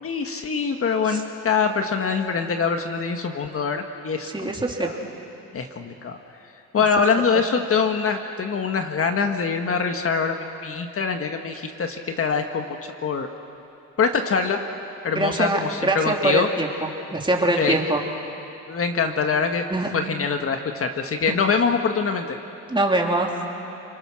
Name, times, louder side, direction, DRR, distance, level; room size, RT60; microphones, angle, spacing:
voice 1, 0.0-4.5 4.8-4.9 5.5-6.2 6.7-12.6 13.0-13.3 14.0-14.6 15.0-16.5 17.6-17.8 18.7-19.6 19.9-22.2, left 5 dB, 50° left, 5 dB, 1.6 m, -24 dB
voice 2, 4.2-4.9 15.1-16.7 17.1-18.0 19.7-19.9 22.7-23.3, right 2 dB, 15° right, 0 dB, 3.2 m, -23 dB
30.0 x 21.5 x 6.4 m, 2.8 s
cardioid pair, 90°, 30 cm